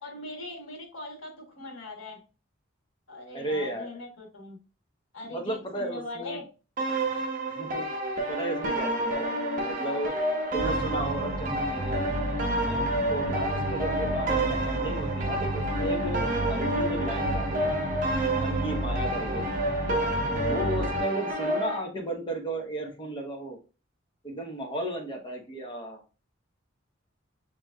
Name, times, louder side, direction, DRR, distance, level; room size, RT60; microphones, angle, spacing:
voice 1, 0.0-2.2 3.1-4.6 5.1-6.5, left 2 dB, 85° left, 1 dB, 1.4 m, -40 dB
voice 2, 3.3-3.9 5.2-6.4 7.1-7.2 7.5-7.9 8.3-9.3 9.6-10.2 10.5-12.0 12.6-17.7 18.3-19.5 20.3-23.6 24.2-26.0, right 1 dB, 25° left, 2 dB, 0.9 m, -34 dB
sound 1, 6.8-21.8, right 1 dB, 45° right, 1.0 m, -29 dB
sound 2, 10.6-21.0, right 1 dB, 5° right, 1.5 m, -32 dB
6.3 x 2.9 x 2.3 m, 0.34 s
head